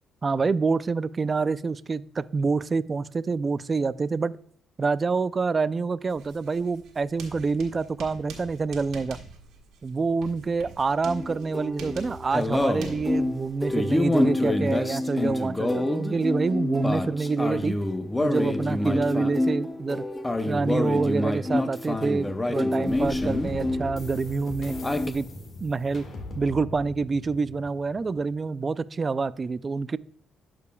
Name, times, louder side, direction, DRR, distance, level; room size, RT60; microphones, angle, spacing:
voice 1, 0.2-4.4 4.8-9.2 9.8-17.8 18.2-20.0 20.5-24.8 25.1-25.3 25.6-26.1 26.4-30.0, right 4 dB, 35° right, 17 dB, 0.3 m, -27 dB
Writing, 6.1-14.8, right 4 dB, 85° right, 1.6 m, -46 dB
sound 1, 11.0-24.2 24.4-25.1, left 2 dB, 15° left, 0.6 m, -27 dB
sound 2, 22.9-28.4, left 2 dB, 55° left, 1.7 m, -39 dB
12.0 x 5.0 x 2.2 m, 0.62 s
cardioid pair, 90°, 0 cm